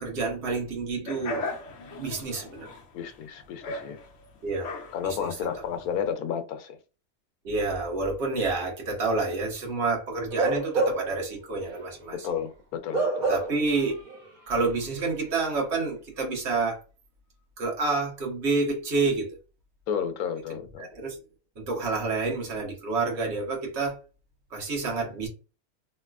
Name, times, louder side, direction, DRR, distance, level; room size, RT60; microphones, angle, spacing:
voice 1, 0.0-2.7 4.4-4.7 5.0-5.3 7.4-12.3 13.3-14.0 14.5-16.8 17.6-19.4 20.5-21.2 21.6-24.0 24.5-25.3, right 3 dB, 55° right, 1.3 m, -29 dB
sound 1, 1.1-6.1, left 2 dB, 60° left, 1.1 m, -38 dB
voice 2, 2.9-4.0 4.9-6.8 12.1-13.3 19.9-20.9, left 8 dB, 85° left, 1.1 m, -32 dB
Bark / Livestock farm animals working animals, 10.3-11.2 11.6-11.8 12.9-13.7 14.1-14.2, right 2 dB, 75° right, 1.4 m, -27 dB
3.1 x 2.9 x 2.3 m
omnidirectional pair, 1.5 m